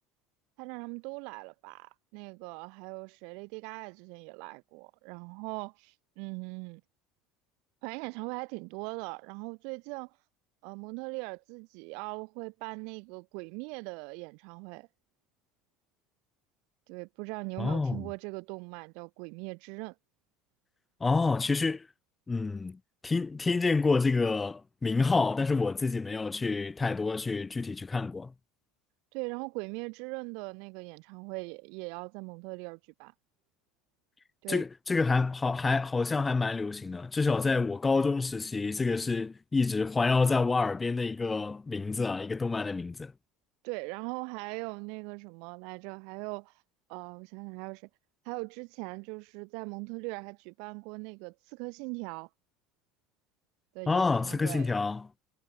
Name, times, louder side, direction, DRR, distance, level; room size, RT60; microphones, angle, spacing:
voice 1, 0.6-6.8 7.8-10.2 10.6-14.9 16.9-19.9 29.1-33.1 34.4-34.6 43.6-46.6 46.9-47.9 48.2-52.3 53.7-54.7, right 34 dB, 70° right, 1.2 m, -40 dB
voice 2, 17.6-18.1 21.0-21.9 22.3-28.3 34.5-43.1 53.9-55.0, left 4 dB, 20° left, 1.0 m, -28 dB
supercardioid pair, 100°, 0 cm